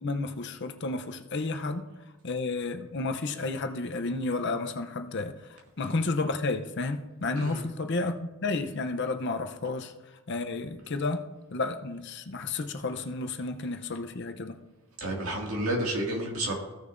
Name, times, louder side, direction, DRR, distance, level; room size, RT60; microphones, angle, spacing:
voice 1, 0.0-1.9 2.2-9.9 10.3-14.6, left 3 dB, 50° left, 0.6 m, -32 dB
voice 2, 15.0-16.6, right 1 dB, 75° right, 2.1 m, -30 dB
15.5 x 6.6 x 2.6 m
head